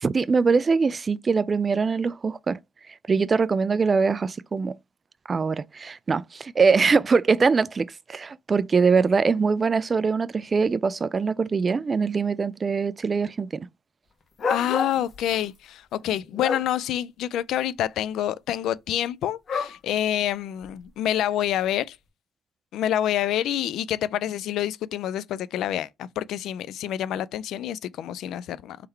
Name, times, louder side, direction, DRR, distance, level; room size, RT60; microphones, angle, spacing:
voice 1, 0.0-2.6 3.1-4.7 5.3-13.7, right 5 dB, 35° right, 0.3 m, -23 dB
sound 1, 14.4-15.4 16.0-16.6 19.5-19.8 20.6-20.7, left 5 dB, 50° left, 1.3 m, -28 dB
voice 2, 14.5-22.0 22.7-28.8, left 11 dB, 80° left, 0.3 m, -27 dB
3.6 x 3.3 x 4.4 m
cardioid pair, 90°, 0 cm